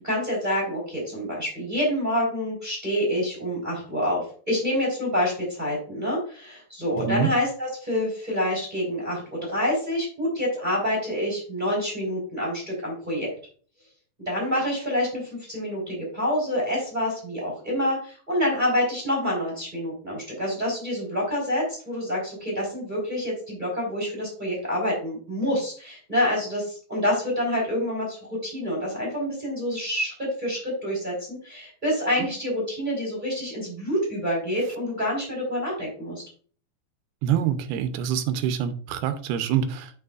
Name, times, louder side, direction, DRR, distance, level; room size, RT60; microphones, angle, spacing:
voice 1, 0.0-13.3 14.3-15.2 15.5-36.2, equal, 10° right, 3.7 m, -27 dB
voice 2, 7.0-7.3 37.2-39.9, right 9 dB, 75° right, 2.5 m, -25 dB
9.1 x 7.1 x 2.5 m
omnidirectional pair, 4.9 m